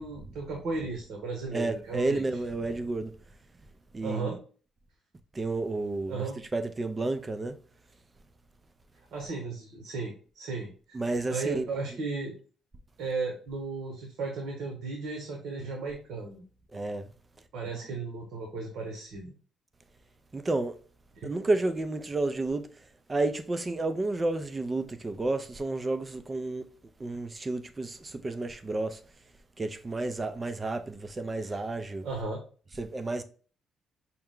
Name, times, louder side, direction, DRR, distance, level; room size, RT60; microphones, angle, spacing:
voice 1, 0.0-2.2 4.0-4.4 6.1-6.4 9.1-12.3 13.0-16.4 17.5-19.3 21.2-21.3 31.4-31.6 32.0-32.4, right 4 dB, 75° right, 1.1 m, -35 dB
voice 2, 1.5-3.1 3.9-4.4 5.3-6.2 6.5-7.6 10.9-11.7 16.7-17.1 20.3-20.7 21.2-22.6 23.1-26.7 27.0-29.0 29.6-32.1 32.8-33.2, right 2 dB, 25° right, 0.5 m, -31 dB
5.8 x 2.2 x 3.7 m
cardioid pair, 90°, 0 cm